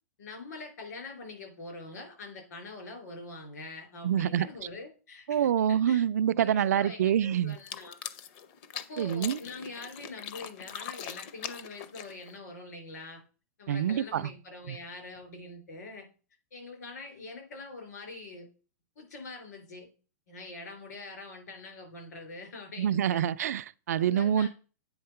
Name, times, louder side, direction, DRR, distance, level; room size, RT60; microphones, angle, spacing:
voice 1, 0.2-6.0 6.3-8.0 8.7-13.2 13.6-16.1 16.5-18.5 19.0-19.9 20.3-23.2 23.9-24.5, left 3 dB, 90° left, 4.3 m, -44 dB
voice 2, 4.0-4.5 5.3-7.6 9.0-9.4 13.7-14.3 14.7-14.8 22.8-24.5, right 9 dB, 70° right, 0.4 m, -26 dB
sound 1, 7.5-12.4, left 9 dB, 30° left, 0.5 m, -42 dB
8.6 x 3.6 x 5.7 m
supercardioid pair, 175°, 9 cm